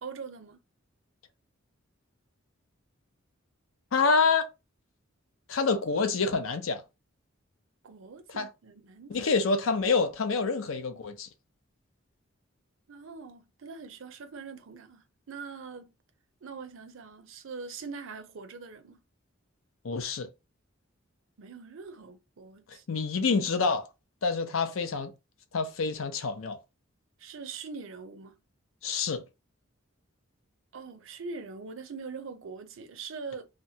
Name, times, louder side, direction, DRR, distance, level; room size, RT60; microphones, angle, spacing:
voice 1, 0.0-0.6 7.8-9.2 12.9-15.9 16.4-19.0 21.4-23.1 27.2-28.4 30.7-33.5, right 4 dB, 70° right, 0.5 m, -43 dB
voice 2, 3.9-4.5 5.5-6.8 8.4-8.5 9.1-11.3 19.8-20.3 22.9-23.9 24.2-25.1 25.5-26.6 28.8-29.2, left 4 dB, 70° left, 0.5 m, -27 dB
2.9 x 2.2 x 2.7 m
head